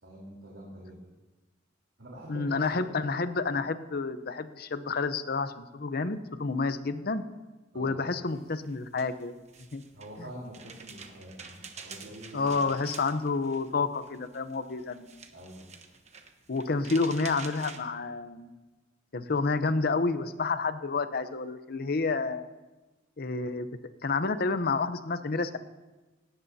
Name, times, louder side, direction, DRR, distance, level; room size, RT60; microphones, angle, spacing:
voice 1, 0.0-1.0 2.0-2.4 2.8-2.9 7.7-8.0 9.9-12.6 15.3-15.6, right 1 dB, 80° right, -5 dB, 3.7 m, -45 dB
voice 2, 2.3-7.2 7.7-9.3 9.7-9.8 12.3-15.1 16.5-18.5 19.1-22.5 23.2-23.7 24.0-25.6, left 4 dB, 55° left, 11 dB, 0.8 m, -29 dB
sound 1, 8.3-17.8, right 5 dB, 35° right, 1.2 m, -48 dB
18.0 x 17.0 x 2.8 m, 1.2 s
head